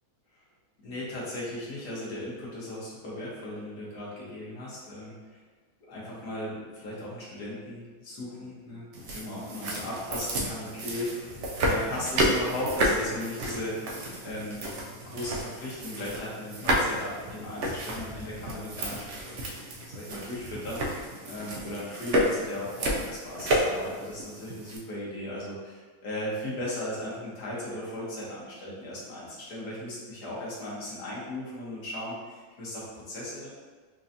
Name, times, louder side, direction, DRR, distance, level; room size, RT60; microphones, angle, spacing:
voice 1, 0.8-5.4 5.8-13.8 14.2-19.3 19.8-33.5, left 1 dB, 80° left, -6 dB, 1.6 m, -37 dB
sound 1, 8.9-24.8, right 1 dB, 65° right, 0.7 m, -31 dB
4.6 x 2.6 x 2.6 m, 1.5 s
omnidirectional pair, 1.7 m